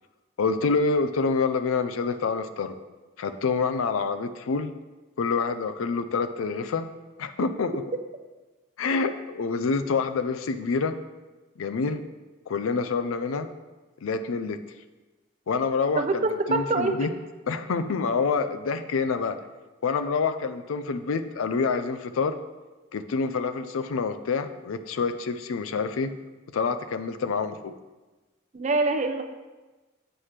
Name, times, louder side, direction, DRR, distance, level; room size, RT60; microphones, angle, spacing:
voice 1, 0.4-2.8 3.2-4.7 5.2-6.9 7.2-7.8 8.8-11.0 11.6-12.0 12.5-13.5 14.0-14.6 15.5-16.2 16.5-17.1 17.5-19.4 19.8-22.4 22.9-26.1 26.5-27.7, left 4 dB, 80° left, 10 dB, 0.4 m, -27 dB
voice 2, 16.0-16.9 28.5-29.2, right 3 dB, 35° right, 7 dB, 0.4 m, -24 dB
7.7 x 5.7 x 3.3 m, 1.2 s
head